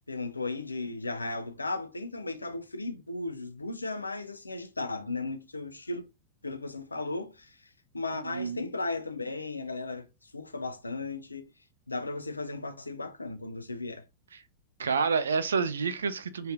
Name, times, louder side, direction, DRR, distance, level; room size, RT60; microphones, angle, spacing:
voice 1, 0.1-6.1 6.4-11.5 11.9-14.0, left 3 dB, 80° left, 0.4 m, -36 dB
voice 2, 8.2-8.7 14.3-14.4 14.8-16.5, right 5 dB, 70° right, 0.3 m, -29 dB
3.1 x 2.6 x 2.4 m
figure-of-eight pair, 90°, 0 cm